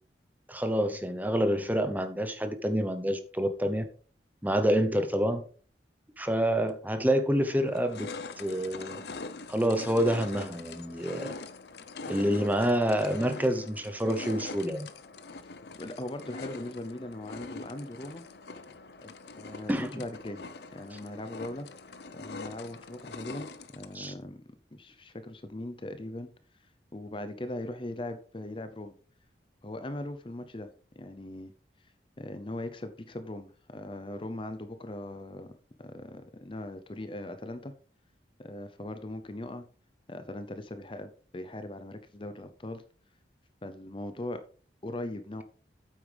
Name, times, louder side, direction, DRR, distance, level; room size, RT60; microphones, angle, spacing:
voice 1, 0.5-3.8 4.4-5.4 6.2-8.1 8.4-9.0 9.5-11.3 12.1-14.9 19.7-20.0 20.9-21.0 23.9-24.1, equal, 10° right, 0.8 m, -27 dB
sound 1, 6.7-6.8 7.3-24.1, left 3 dB, 70° left, 0.7 m, -43 dB
voice 2, 15.8-18.2 19.0-20.4 20.7-21.7 22.1-24.4 24.7-26.3 26.9-28.9 29.6-30.7 31.0-31.5 32.2-35.5 35.8-37.7 38.4-39.6 40.1-42.8 43.6-44.4 44.8-45.4, left 1 dB, 30° left, 0.6 m, -39 dB
8.8 x 8.5 x 3.4 m
head